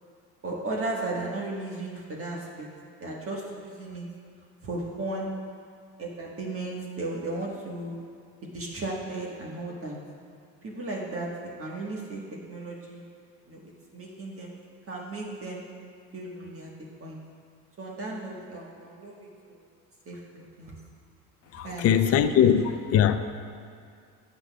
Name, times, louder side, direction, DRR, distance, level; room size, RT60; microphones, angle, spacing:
voice 1, 0.4-2.7 3.0-4.1 4.6-5.3 6.0-8.0 8.4-9.9 10.6-11.3 11.6-12.2 12.5-13.0 13.5-14.5 14.9-15.6 16.1-16.7 17.0-17.2 17.8-19.6 20.0-20.8 21.6-21.9, right 2 dB, 35° right, -3 dB, 1.4 m, -35 dB
voice 2, 21.5-23.2, left 9 dB, 40° left, 9 dB, 0.5 m, -21 dB
13.5 x 8.2 x 2.3 m, 2.2 s
supercardioid pair, 95°, 38 cm